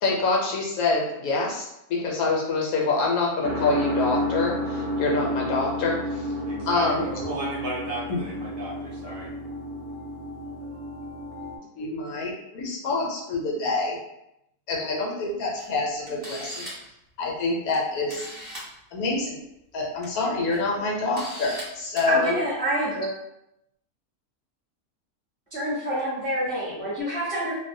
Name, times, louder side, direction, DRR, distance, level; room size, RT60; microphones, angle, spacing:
voice 1, 0.0-6.3 6.7-7.1 8.1-8.2 11.8-14.0 14.7-16.6 17.2-18.3 18.9-19.4 19.7-22.3, left 3 dB, 75° left, -1 dB, 1.0 m, -26 dB
sound 1, 3.4-11.6, left 1 dB, 75° right, 1.0 m, -31 dB
voice 2, 6.4-9.3, right 1 dB, 60° right, -4 dB, 0.6 m, -35 dB
Camera, 15.6-15.7 16.1-16.9 17.7-17.8 18.1-18.7 19.8-20.0 20.5-20.6 21.2-21.6 21.9-22.1, equal, 15° right, 0.9 m, -38 dB
voice 3, 22.1-23.1 25.5-27.5, right 1 dB, 10° left, -9 dB, 0.5 m, -27 dB
2.5 x 2.1 x 2.6 m, 0.84 s
omnidirectional pair, 1.6 m